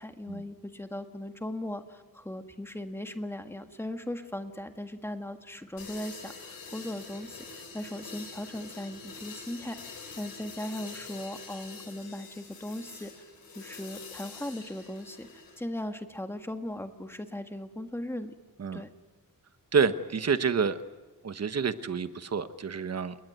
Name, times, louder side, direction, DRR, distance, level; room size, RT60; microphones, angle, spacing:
voice 1, 0.0-13.1 13.5-15.3 15.6-18.3 18.7-18.9, left 1 dB, 5° left, 6 dB, 1.6 m, -38 dB
sound 1, 5.8-15.6, left 4 dB, 90° left, 7.1 m, -46 dB
voice 2, 19.7-20.8 21.2-23.2, right 6 dB, 45° right, 11 dB, 1.2 m, -28 dB
29.5 x 20.5 x 9.3 m, 1.2 s
wide cardioid pair, 175°, 34 cm